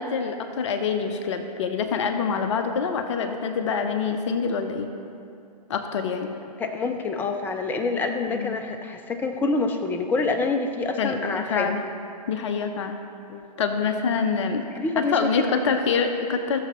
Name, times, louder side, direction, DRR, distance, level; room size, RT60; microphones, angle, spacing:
voice 1, 0.0-4.9 5.7-6.3 8.3-8.6 11.0-11.8 12.3-13.0 13.6-14.6 15.0-16.6, left 5 dB, 45° left, 6 dB, 0.7 m, -26 dB
voice 2, 6.6-11.7 13.3-13.4 14.7-15.5, left 3 dB, 10° left, 6 dB, 0.4 m, -26 dB
15.5 x 7.0 x 3.0 m, 2.5 s
figure-of-eight pair, 120°, 21 cm